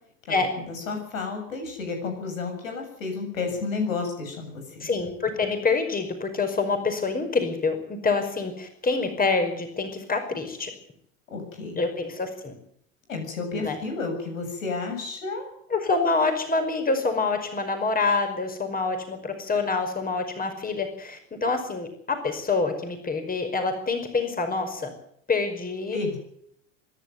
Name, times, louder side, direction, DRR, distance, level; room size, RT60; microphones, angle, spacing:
voice 1, 0.7-4.9 11.3-11.8 13.1-15.4 25.9-26.2, left 4 dB, 80° left, 4 dB, 7.4 m, -31 dB
voice 2, 4.8-7.8 8.0-10.7 11.8-12.5 13.5-13.8 15.7-24.9 25.3-26.0, left 4 dB, 20° left, 7 dB, 5.2 m, -26 dB
25.0 x 11.5 x 9.4 m, 0.70 s
hypercardioid pair, 75°, 39 cm